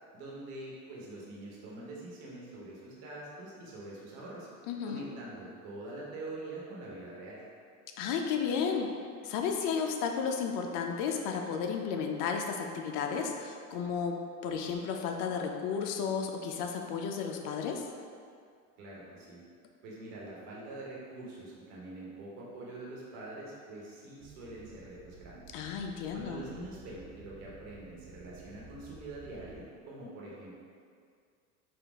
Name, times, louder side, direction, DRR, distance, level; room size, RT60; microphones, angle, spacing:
voice 1, 0.1-4.5 4.8-7.4 18.8-19.4 19.8-25.5 26.1-30.6, right 2 dB, 65° right, -5 dB, 1.3 m, -44 dB
voice 2, 4.7-5.1 8.0-9.0 9.2-17.9 25.5-26.4, left 6 dB, 45° left, 3 dB, 0.4 m, -33 dB
sound 1, 24.2-29.6, right 3 dB, 35° right, 0.4 m, -54 dB
4.3 x 2.5 x 3.5 m, 2.2 s
hypercardioid pair, 90°, 46 cm